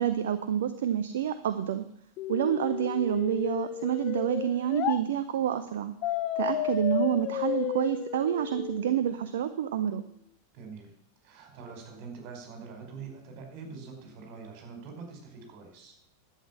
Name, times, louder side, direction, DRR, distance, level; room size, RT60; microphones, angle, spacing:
voice 1, 0.0-1.9 2.3-5.9 6.4-10.0, right 10 dB, 60° right, 10 dB, 0.7 m, -28 dB
sound 1, 2.2-5.0 6.0-9.0, left 12 dB, 40° left, 0.7 m, -33 dB
voice 2, 10.5-10.9 11.2-16.0, right 5 dB, 45° right, 3 dB, 4.8 m, -44 dB
11.5 x 8.4 x 7.3 m, 0.69 s
figure-of-eight pair, 90°, 0 cm